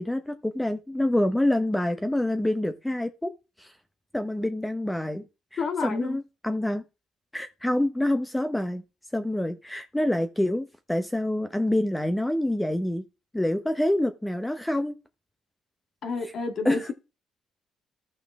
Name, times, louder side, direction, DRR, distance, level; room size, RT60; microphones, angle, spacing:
voice 1, 0.0-3.3 3.6-3.7 4.1-5.2 5.5-6.8 7.3-8.8 9.1-13.0 13.3-14.9 16.6-16.9, left 1 dB, 10° left, 0.9 m, -26 dB
voice 2, 5.6-6.2 16.0-16.9, left 4 dB, 60° left, 2.0 m, -30 dB
14.0 x 5.6 x 3.5 m
cardioid pair, 90°, 0 cm